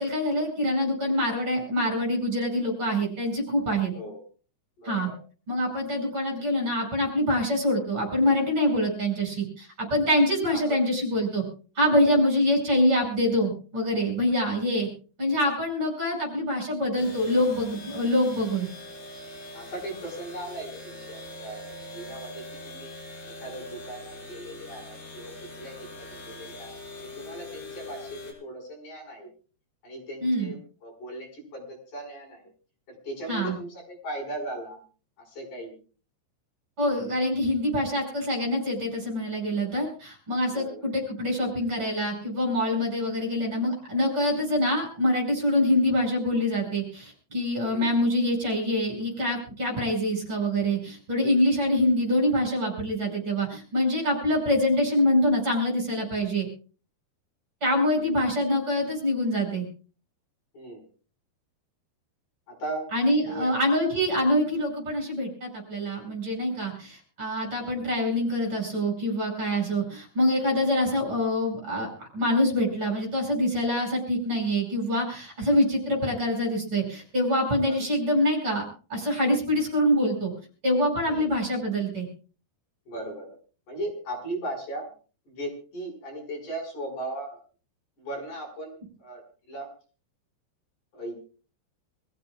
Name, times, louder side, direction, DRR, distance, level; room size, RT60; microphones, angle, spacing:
voice 1, 0.0-3.9 4.8-5.1 5.5-11.4 11.8-14.9 15.2-18.7 30.2-30.5 33.3-33.6 36.8-56.5 57.6-59.7 62.9-78.6 78.9-80.3 80.6-82.1, left 1 dB, 30° right, 1 dB, 6.4 m, -25 dB
voice 2, 3.9-4.2 4.8-5.2 10.5-10.8 11.9-12.2 19.5-22.9 23.4-29.3 29.8-32.5 32.9-34.8 35.3-35.8 40.5-40.9 47.7-47.9 57.9-58.2 60.5-60.8 62.5-62.9 63.2-63.5 77.7-77.8 81.1-81.3 82.9-83.4 83.7-84.9 85.3-87.4 88.0-89.2 89.5-89.7 90.9-91.1, right 1 dB, 45° left, 0 dB, 6.7 m, -38 dB
sound 1, 17.0-28.3, left 1 dB, 70° left, 7.7 m, -42 dB
26.0 x 15.0 x 2.4 m, 0.38 s
omnidirectional pair, 5.0 m